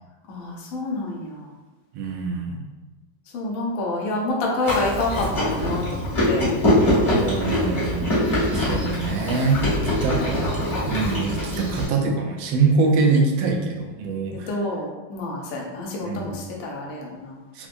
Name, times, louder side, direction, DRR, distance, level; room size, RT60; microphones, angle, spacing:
voice 1, 0.3-1.5 3.3-6.5 14.3-17.4, left 2 dB, 90° left, -2 dB, 0.7 m, -28 dB
voice 2, 1.9-2.7 7.1-10.4 10.9-14.5 16.0-16.3 17.5-17.7, right 4 dB, 80° right, 1 dB, 1.3 m, -24 dB
Chewing mastication, 4.7-11.9, left 1 dB, 25° left, 0.9 m, -23 dB
4.3 x 2.1 x 2.5 m, 1.2 s
omnidirectional pair, 2.2 m